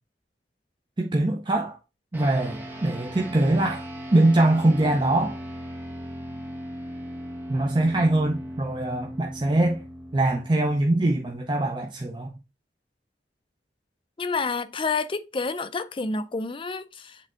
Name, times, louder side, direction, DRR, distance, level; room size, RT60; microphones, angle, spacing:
voice 1, 1.0-1.8 2.1-5.4 7.5-9.8 10.1-12.3, right 2 dB, 25° right, 0.6 m, -23 dB
sound 1, 2.1-11.8, equal, 10° right, 1.1 m, -38 dB
voice 2, 14.2-17.2, left 4 dB, 30° left, 0.4 m, -29 dB
7.6 x 3.4 x 3.7 m
head